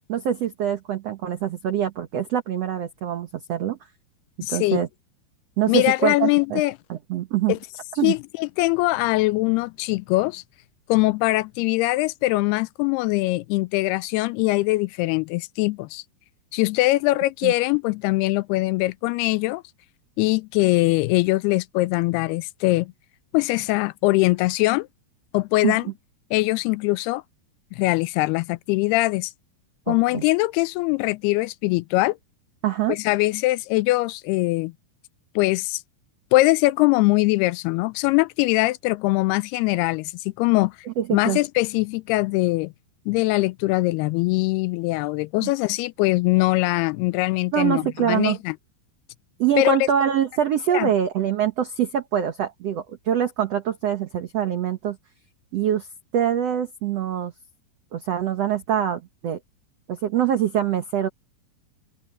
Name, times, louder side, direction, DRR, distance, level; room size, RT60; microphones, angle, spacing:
voice 1, 0.1-3.8 4.5-4.9 5.6-6.6 6.9-7.5 7.9-8.1 17.4-17.5 25.6-25.8 29.9-30.2 32.6-33.0 41.0-41.4 45.4-45.5 47.5-48.4 49.4-55.0 55.5-55.9 56.1-57.3 57.9-59.4 59.9-61.1, right 10 dB, 90° right, 1.4 m, -24 dB
voice 2, 4.4-4.8 5.7-6.7 7.5-7.6 8.0-10.4 10.9-16.0 16.5-19.6 20.2-22.9 23.3-24.9 25.3-25.9 26.3-27.2 27.7-29.3 29.9-32.2 32.9-34.7 35.4-35.8 36.3-40.8 41.1-42.7 43.1-48.5 49.6-49.8 50.7-50.9, left 20 dB, 85° left, 2.4 m, -22 dB
open air
omnidirectional pair, 4.7 m